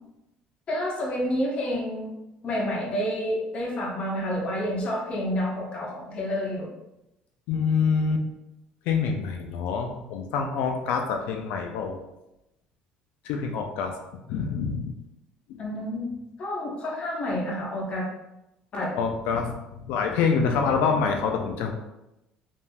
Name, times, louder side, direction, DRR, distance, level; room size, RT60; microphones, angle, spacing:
voice 1, 0.7-2.1 2.4-6.7 13.4-13.5 15.6-16.1 16.4-18.1 18.7-19.0, equal, 40° left, -2 dB, 0.7 m, -29 dB
voice 2, 7.5-8.2 8.9-12.0 13.2-14.0 14.3-14.9 15.5-15.6 19.0-21.7, left 5 dB, 80° left, 3 dB, 0.3 m, -26 dB
3.2 x 2.5 x 2.2 m, 0.91 s
cardioid pair, 135°, 3 cm